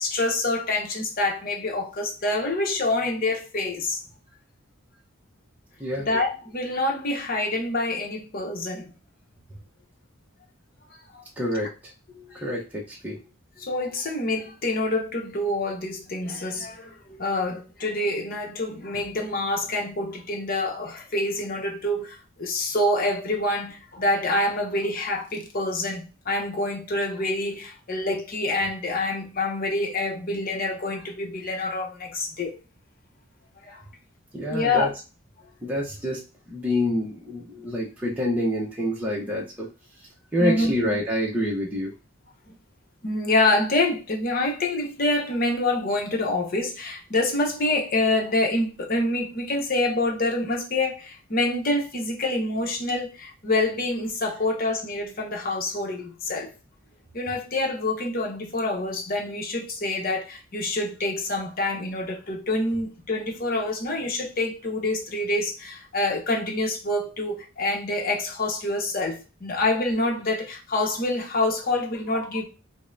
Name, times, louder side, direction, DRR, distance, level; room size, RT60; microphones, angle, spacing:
voice 1, 0.0-4.0 6.0-8.9 11.1-11.2 12.1-12.4 13.6-32.5 33.6-33.8 34.5-34.9 37.5-37.8 40.4-40.7 43.0-56.5 57.1-72.4, left 2 dB, 40° left, 0.8 m, -26 dB
voice 2, 11.4-11.9 12.3-13.2 34.3-34.9 35.6-39.7 40.3-41.9, left 1 dB, 5° right, 0.7 m, -27 dB
5.2 x 2.1 x 2.6 m
head